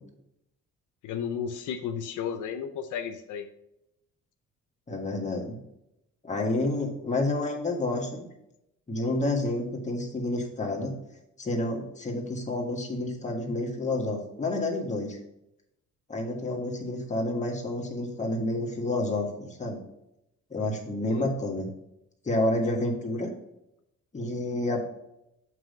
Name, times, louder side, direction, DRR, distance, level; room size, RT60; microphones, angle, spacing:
voice 1, 1.0-3.5 21.1-21.3, left 7 dB, 85° left, 7 dB, 0.6 m, -33 dB
voice 2, 4.9-5.6 6.2-8.3 8.9-10.9 11.4-15.2 16.1-19.8 20.5-21.7 22.2-23.3 24.1-24.9, left 2 dB, 25° left, 0 dB, 1.5 m, -29 dB
7.4 x 3.2 x 5.2 m, 0.82 s
cardioid pair, 90°, 30 cm